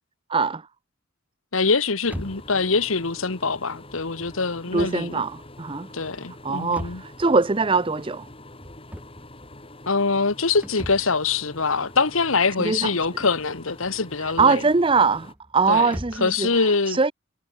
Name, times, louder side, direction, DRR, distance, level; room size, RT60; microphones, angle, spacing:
voice 1, 0.3-0.7 4.7-5.9 6.4-8.3 12.6-12.9 14.2-17.1, right 4 dB, 25° right, 0.6 m, -22 dB
voice 2, 1.5-5.2 5.9-7.0 9.9-14.6 15.7-17.0, left 4 dB, 80° left, 1.5 m, -24 dB
sound 1, 2.0-16.4, equal, 5° right, 4.7 m, -43 dB
sound 2, 2.1-15.3, left 1 dB, 25° left, 7.4 m, -45 dB
head